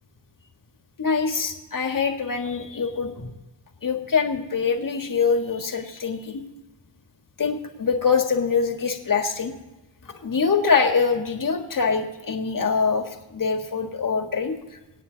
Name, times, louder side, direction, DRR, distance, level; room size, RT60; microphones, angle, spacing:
voice 1, 1.0-3.4 3.8-6.4 7.4-9.5 10.2-14.5, left 5 dB, 45° left, 5 dB, 1.7 m, -24 dB
25.5 x 8.8 x 4.0 m, 1.1 s
wide cardioid pair, 125°, 44 cm